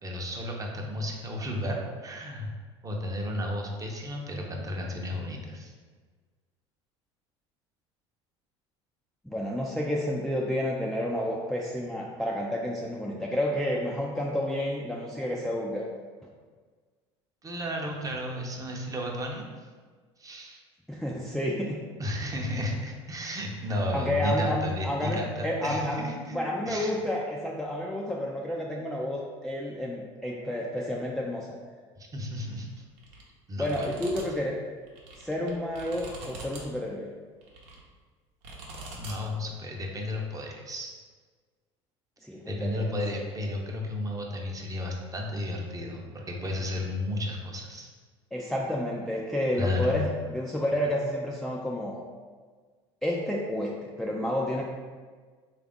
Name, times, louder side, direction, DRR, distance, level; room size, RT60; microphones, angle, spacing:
voice 1, 0.0-2.5 2.8-5.7 17.4-19.5 20.2-20.6 22.0-26.4 26.7-27.0 32.0-32.7 33.5-33.9 38.9-40.9 42.5-47.9 49.5-49.9, left 1 dB, 25° right, 0 dB, 0.7 m, -33 dB
voice 2, 9.3-15.8 20.9-21.8 23.9-31.5 33.6-34.6 35.2-37.1 42.2-42.9 48.3-52.0 53.0-54.6, left 1 dB, ahead, -3 dB, 0.4 m, -30 dB
sound 1, 33.0-33.2 33.6-34.2 34.8-36.6 37.4-37.8 38.4-39.2, right 2 dB, 75° right, 0.8 m, -43 dB
3.3 x 2.4 x 3.6 m, 1.5 s
hypercardioid pair, 80°, 15 cm